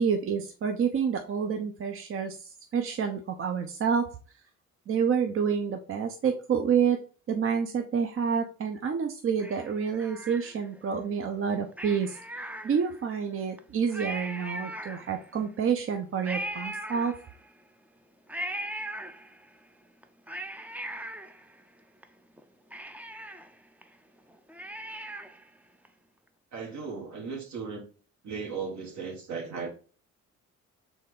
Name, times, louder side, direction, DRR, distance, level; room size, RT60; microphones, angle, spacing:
voice 1, 0.0-4.2 4.9-7.0 7.3-12.2 12.6-17.2, right 6 dB, 45° right, 0.6 m, -28 dB
Cat, 9.4-10.9 11.7-13.1 13.6-13.7 13.9-15.4 16.2-17.6 18.3-19.6 20.0-22.0 22.4-22.5 22.7-25.5 25.8-25.9, right 1 dB, 5° right, 0.4 m, -39 dB
voice 2, 26.5-27.8 28.2-29.7, right 5 dB, 70° right, 1.6 m, -36 dB
4.2 x 3.3 x 3.6 m
cardioid pair, 90°, 30 cm